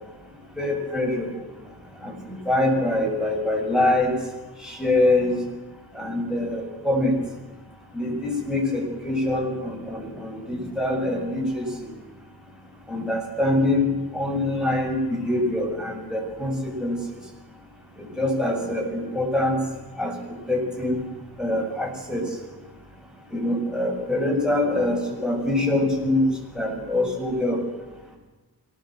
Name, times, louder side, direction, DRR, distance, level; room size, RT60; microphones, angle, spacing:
voice 1, 0.6-1.3 2.0-4.1 4.6-5.4 5.9-7.2 7.9-11.9 12.9-17.0 18.0-19.6 20.0-21.0 21.4-22.3 23.3-27.6, left 1 dB, ahead, -1 dB, 7.6 m, -24 dB
24.0 x 18.5 x 7.8 m, 1.2 s
wide cardioid pair, 105°, 39 cm